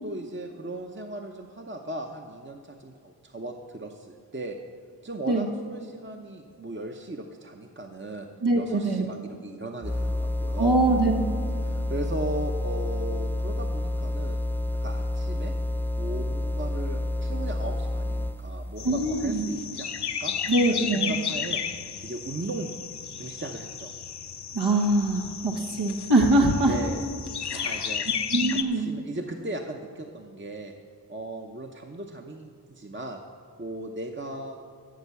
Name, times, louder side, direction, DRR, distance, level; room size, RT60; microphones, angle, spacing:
voice 1, 0.0-4.6 5.0-8.3 8.6-10.8 11.6-14.4 14.8-15.5 16.0-20.3 20.7-21.6 22.0-22.7 23.2-23.9 26.6-27.1 27.5-28.1 28.5-30.7 31.1-33.2 33.6-34.6, right 2 dB, 30° right, 3 dB, 0.8 m, -37 dB
voice 2, 8.4-9.0 10.6-11.2 18.8-19.4 20.5-21.1 24.5-26.7 27.5-27.9 28.3-28.9, right 2 dB, 80° right, 0 dB, 1.3 m, -23 dB
sound 1, 9.8-18.5, left 1 dB, 5° left, 0.4 m, -29 dB
sound 2, 18.8-28.6, left 7 dB, 75° left, 0.7 m, -33 dB
13.0 x 7.3 x 6.8 m, 2.2 s
wide cardioid pair, 40°, 40 cm